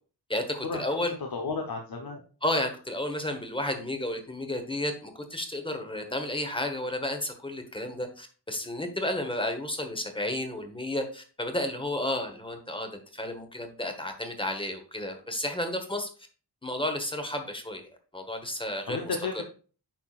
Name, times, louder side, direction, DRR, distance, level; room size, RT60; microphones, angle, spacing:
voice 1, 0.3-1.2 2.4-16.1 16.6-17.9 18.1-19.4, left 1 dB, 10° left, 5 dB, 1.1 m, -32 dB
voice 2, 1.3-2.2 18.9-19.4, left 4 dB, 60° left, 2 dB, 1.0 m, -32 dB
9.0 x 5.8 x 2.4 m, 0.38 s
wide cardioid pair, 155°, 41 cm